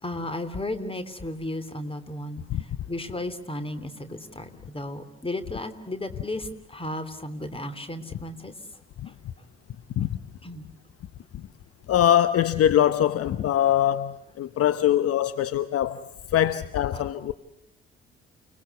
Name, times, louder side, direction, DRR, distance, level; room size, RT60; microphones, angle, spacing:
voice 1, 0.0-8.5 9.0-9.1 10.4-10.7 16.4-16.5 16.9-17.0, left 1 dB, 20° left, 3.1 m, -34 dB
voice 2, 11.9-17.3, left 11 dB, 50° left, 0.9 m, -23 dB
29.5 x 19.0 x 8.3 m
figure-of-eight pair, 45°, 30 cm